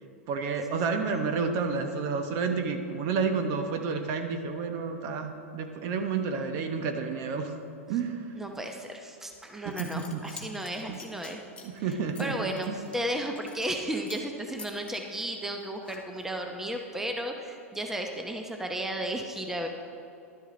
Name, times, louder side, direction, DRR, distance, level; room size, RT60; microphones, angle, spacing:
voice 1, 0.3-7.6 7.9-8.3 9.6-10.2 10.9-11.0 11.6-12.8, right 5 dB, 45° right, 6 dB, 1.1 m, -30 dB
voice 2, 8.4-11.4 12.2-19.7, right 1 dB, 5° right, 3 dB, 0.8 m, -34 dB
Zipper (clothing) / Coin (dropping), 9.3-9.4 9.7-13.8 14.1-14.3 14.6-16.4, left 5 dB, 15° left, 1.3 m, -48 dB
11.5 x 10.0 x 3.9 m, 2.6 s
hypercardioid pair, 100°, 8 cm